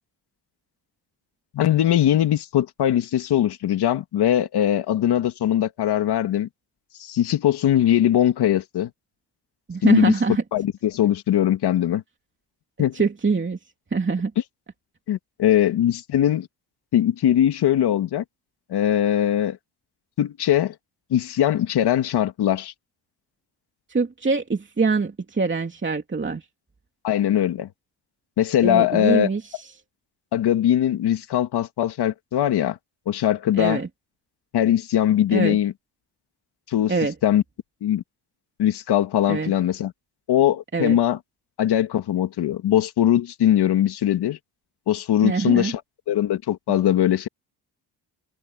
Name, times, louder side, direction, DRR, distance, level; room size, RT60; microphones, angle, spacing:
voice 1, 1.5-6.5 7.0-8.9 9.8-10.1 10.5-12.0 12.8-13.0 15.1-16.5 16.9-18.2 18.7-19.6 20.2-20.7 21.1-22.7 27.0-27.7 28.4-29.3 30.3-32.8 33.1-33.8 34.5-35.7 36.7-36.9 37.2-37.4 37.8-38.0 38.6-39.9 40.3-41.2 41.6-44.4 44.9-45.8 46.1-47.3, left 11 dB, 80° left, 2.2 m, -21 dB
voice 2, 9.7-10.4 12.9-13.6 13.9-14.3 23.9-26.4 28.6-29.6 33.6-33.9 35.3-35.6 36.9-37.1 39.3-39.5 40.7-41.0 45.2-45.7, right 4 dB, 30° right, 3.0 m, -23 dB
cardioid pair, 80°, 39 cm